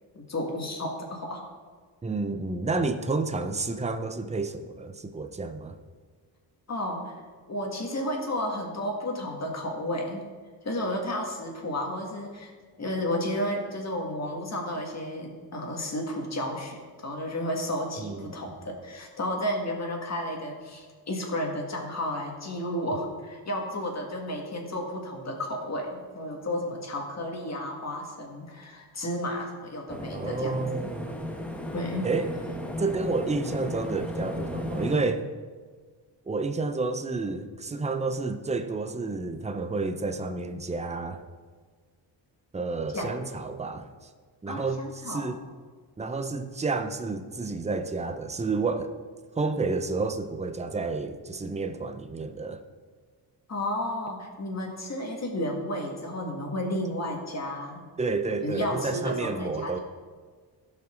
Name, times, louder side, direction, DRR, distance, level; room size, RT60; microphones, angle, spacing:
voice 1, 0.1-1.4 6.7-7.1 7.5-10.2 10.6-12.5 12.8-30.9 31.7-32.1 42.9-43.1 44.5-45.3 53.5-57.8 58.4-59.8, left 1 dB, 35° left, 0 dB, 2.0 m, -32 dB
voice 2, 2.0-5.7 18.0-18.3 30.1-31.1 32.0-32.3 32.8-35.3 36.3-41.2 42.5-43.9 44.4-45.4 46.0-48.9 49.4-52.6 58.0-59.8, right 3 dB, 15° right, 8 dB, 0.6 m, -30 dB
sound 1, 29.9-35.0, left 1 dB, 5° left, 1.0 m, -35 dB
16.5 x 5.7 x 3.9 m, 1.5 s
cardioid pair, 100°, 45 cm